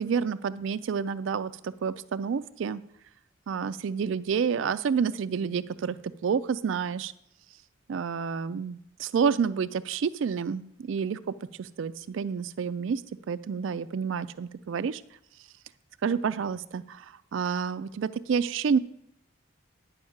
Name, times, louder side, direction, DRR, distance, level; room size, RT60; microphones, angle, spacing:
voice 1, 0.0-2.8 3.5-6.0 6.2-7.1 7.9-13.0 13.3-15.0 16.0-18.8, right 6 dB, 65° right, 12 dB, 0.3 m, -29 dB
10.5 x 5.4 x 7.1 m, 0.73 s
head